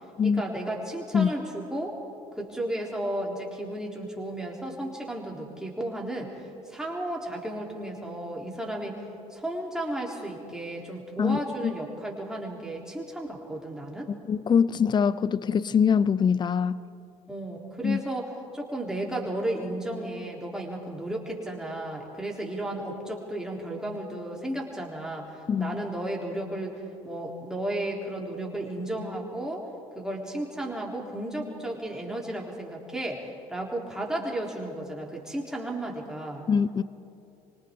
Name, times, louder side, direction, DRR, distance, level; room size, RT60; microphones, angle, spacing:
voice 1, 0.2-2.0 2.4-9.0 9.3-14.1 17.3-26.8 27.0-29.7 30.0-36.4, right 1 dB, 5° right, -1 dB, 3.7 m, -34 dB
voice 2, 11.2-11.7 14.3-16.8 17.8-18.0 25.5-25.8 36.5-36.8, left 6 dB, 20° left, 18 dB, 0.6 m, -23 dB
29.0 x 25.0 x 3.8 m, 2.6 s
figure-of-eight pair, 60°, 20 cm